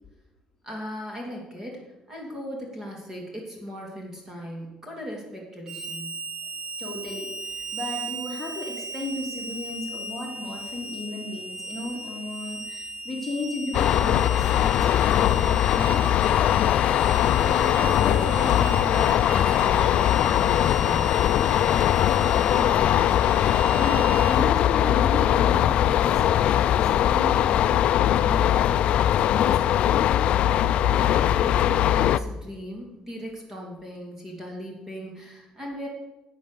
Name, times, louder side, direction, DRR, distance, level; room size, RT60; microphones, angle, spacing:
voice 1, 0.6-6.2 17.3-21.3 31.4-35.9, equal, 20° right, 0 dB, 2.7 m, -37 dB
Harmonica, 5.7-24.4, right 2 dB, 80° right, 2.2 m, -37 dB
voice 2, 6.8-16.1 19.7-20.0 21.4-28.5 29.1-30.2, left 2 dB, 15° left, -2 dB, 2.3 m, -35 dB
sound 1, 13.7-32.2, left 11 dB, 55° left, 0.4 m, -21 dB
11.5 x 8.4 x 6.7 m, 1.0 s
cardioid pair, 160°, 2 cm